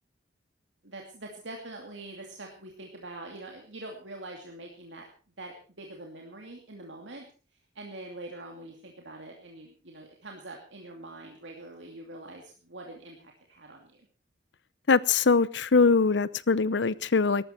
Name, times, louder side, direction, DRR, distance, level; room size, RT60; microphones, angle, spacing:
voice 1, 0.8-5.1 5.4-7.3 7.7-14.0, right 2 dB, 85° right, 1 dB, 2.6 m, -44 dB
voice 2, 14.9-17.4, left 4 dB, 75° left, 19 dB, 0.7 m, -22 dB
18.5 x 13.5 x 4.4 m, 0.37 s
head